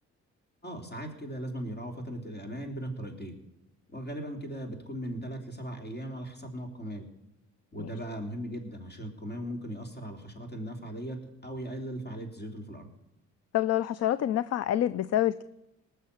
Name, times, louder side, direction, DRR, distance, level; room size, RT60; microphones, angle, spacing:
voice 1, 0.6-3.3 3.9-7.1 7.7-11.2 11.4-12.9, equal, 35° left, 4 dB, 3.4 m, -38 dB
voice 2, 13.5-15.4, left 12 dB, 55° left, 17 dB, 0.5 m, -27 dB
19.0 x 6.8 x 8.3 m, 0.91 s
cardioid pair, 90°, 30 cm